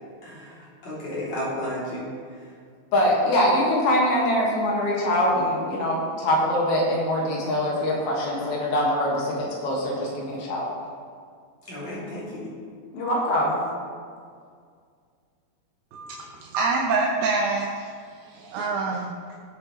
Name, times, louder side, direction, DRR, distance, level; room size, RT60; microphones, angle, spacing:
voice 1, 0.2-2.1 2.3-2.5 8.2-8.5 11.7-12.5, left 1 dB, 45° left, -8 dB, 4.0 m, -33 dB
voice 2, 2.9-10.7 12.9-13.6, left 1 dB, 75° left, -3 dB, 3.6 m, -23 dB
voice 3, 15.9-17.9 18.4-19.1, right 3 dB, 80° right, -1 dB, 2.8 m, -26 dB
18.0 x 7.8 x 3.1 m, 2.1 s
omnidirectional pair, 4.4 m